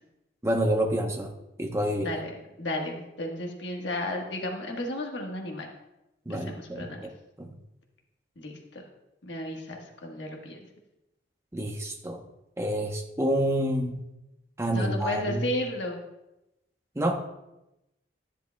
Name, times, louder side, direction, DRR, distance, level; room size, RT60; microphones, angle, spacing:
voice 1, 0.4-1.3 1.6-2.1 6.3-7.1 7.4-7.5 11.5-12.2 12.6-14.0 14.6-15.5 16.9-17.1, right 1 dB, 15° right, 3 dB, 0.8 m, -28 dB
voice 2, 2.0-2.3 2.6-5.7 6.3-7.0 8.4-8.8 9.2-10.6 14.7-16.0, left 1 dB, 70° left, 1 dB, 1.4 m, -33 dB
11.0 x 10.5 x 2.2 m, 0.92 s
head